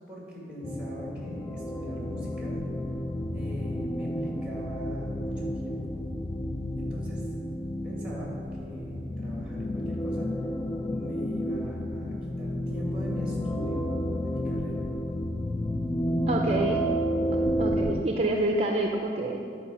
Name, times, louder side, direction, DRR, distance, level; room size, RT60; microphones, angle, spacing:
voice 1, 0.1-2.6 3.3-6.0 6.8-7.3 7.8-10.3 10.8-14.9, equal, 5° right, -4 dB, 2.4 m, -41 dB
sound 1, 0.6-18.0, equal, 20° left, 0.3 m, -31 dB
voice 2, 16.3-16.8 17.3-19.4, right 1 dB, 35° right, 1 dB, 0.5 m, -27 dB
10.0 x 4.7 x 7.4 m, 2.6 s
head